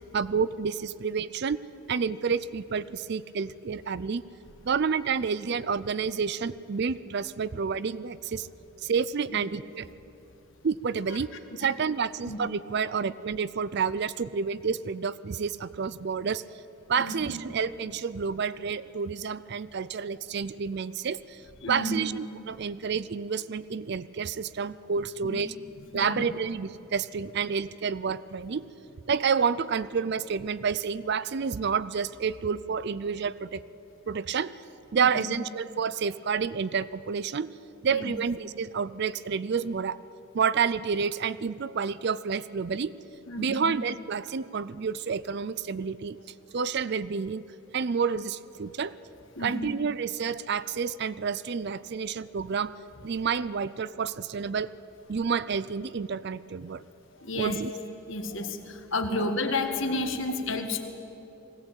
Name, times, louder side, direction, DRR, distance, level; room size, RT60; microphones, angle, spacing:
voice 1, 0.1-1.6 1.9-4.2 4.6-8.5 8.8-9.9 10.6-11.3 11.6-16.4 16.9-21.4 21.7-25.5 25.9-28.7 29.1-33.6 34.1-34.5 34.9-37.5 37.8-40.0 40.3-42.9 43.4-46.2 46.5-47.5 47.7-48.9 49.4-52.7 53.0-54.7 55.1-56.8 57.4-57.7 60.3-60.4, right 6 dB, 50° right, 17 dB, 0.4 m, -29 dB
voice 2, 17.0-17.4 21.6-22.1 25.2-25.4 25.9-26.3 35.0-35.4 37.9-38.1 43.3-43.8 49.4-49.7 57.1-57.6 58.1-60.8, left 2 dB, 60° left, 5 dB, 1.8 m, -32 dB
21.0 x 16.5 x 8.9 m, 2.9 s
head